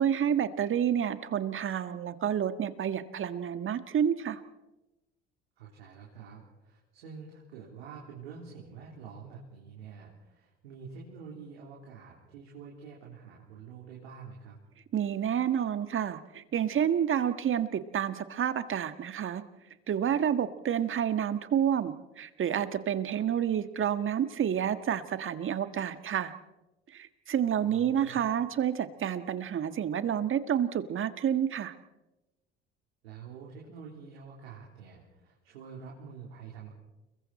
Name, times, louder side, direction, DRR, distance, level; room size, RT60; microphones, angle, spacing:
voice 1, 0.0-4.4 14.9-19.4 19.9-26.3 26.9-31.7, right 9 dB, 40° right, 11 dB, 1.7 m, -29 dB
voice 2, 5.6-14.6 23.1-23.2 27.5-28.3 33.0-36.7, right 6 dB, 80° right, -3 dB, 3.8 m, -47 dB
29.5 x 21.5 x 4.3 m, 1.0 s
hypercardioid pair, 60°, 30 cm